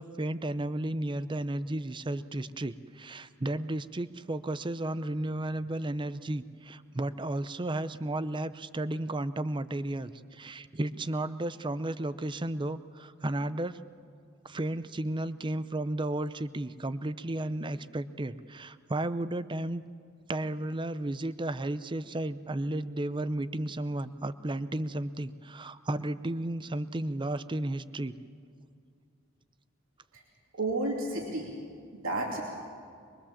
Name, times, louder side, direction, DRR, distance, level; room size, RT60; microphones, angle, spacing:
voice 1, 0.0-13.8 14.4-19.8 20.3-28.1, right 1 dB, 25° right, 14 dB, 0.6 m, -33 dB
voice 2, 30.6-31.5 31.9-32.4, right 2 dB, 80° right, -1 dB, 2.8 m, -31 dB
23.5 x 23.0 x 7.3 m, 2.3 s
head